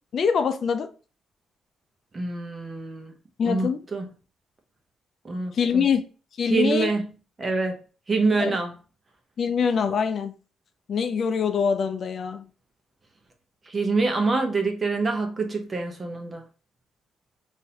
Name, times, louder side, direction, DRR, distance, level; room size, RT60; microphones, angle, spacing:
voice 1, 0.1-0.9 3.4-3.8 5.5-6.1 6.4-6.9 8.4-8.5 9.4-10.3 10.9-12.5, left 6 dB, 55° left, 0.4 m, -24 dB
voice 2, 2.1-3.1 3.4-4.2 5.2-5.8 6.5-7.1 7.4-7.8 8.1-8.7 13.7-16.4, right 3 dB, 30° right, 0.9 m, -26 dB
3.8 x 2.7 x 2.8 m
cardioid pair, 90°, 0 cm